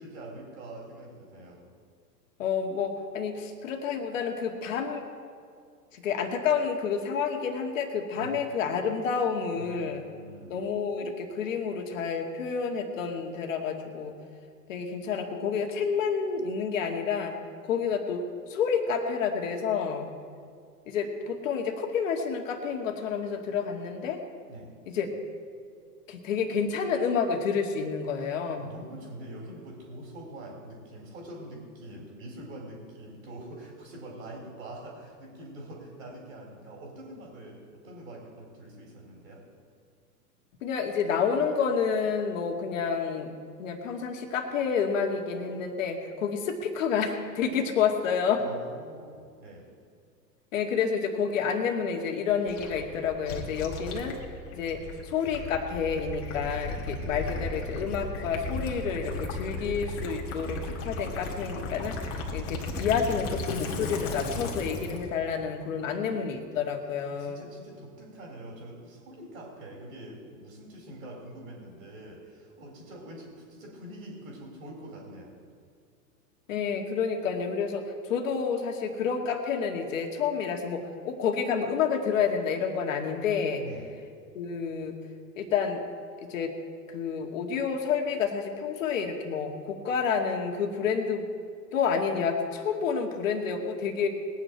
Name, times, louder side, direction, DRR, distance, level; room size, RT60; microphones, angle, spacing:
voice 1, 0.0-1.6 8.1-8.4 9.5-10.6 24.5-24.7 28.2-39.4 48.4-49.7 65.2-66.5 67.0-75.3 83.6-83.9, right 1 dB, 60° right, -2 dB, 3.8 m, -45 dB
voice 2, 2.4-5.0 5.9-10.0 10.5-14.2 14.7-17.3 17.6-18.2 18.5-20.1 20.9-24.2 24.9-25.1 26.1-28.7 40.6-43.3 43.6-48.4 50.5-54.2 54.5-67.5 76.5-83.7 84.3-85.0 85.4-85.8 86.2-86.5 86.9-91.3 91.7-94.1, left 6 dB, 50° left, 3 dB, 2.0 m, -29 dB
Gurgling / Liquid, 52.5-65.1, left 2 dB, 30° left, 2.1 m, -35 dB
20.5 x 9.2 x 4.6 m, 2.2 s
figure-of-eight pair, 105°, 48 cm